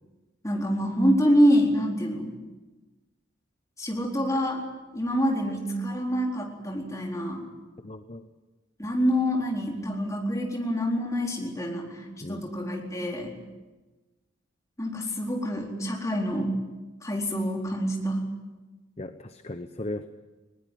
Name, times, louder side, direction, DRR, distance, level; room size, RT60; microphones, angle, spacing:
voice 1, 0.4-2.3 3.8-4.6 4.9-7.4 8.8-13.3 14.8-16.5 17.0-18.2, equal, 15° left, -1 dB, 4.2 m, -26 dB
voice 2, 7.8-8.2 12.2-12.5 19.0-20.1, left 1 dB, 35° left, 9 dB, 0.8 m, -37 dB
21.0 x 19.5 x 9.3 m, 1.2 s
head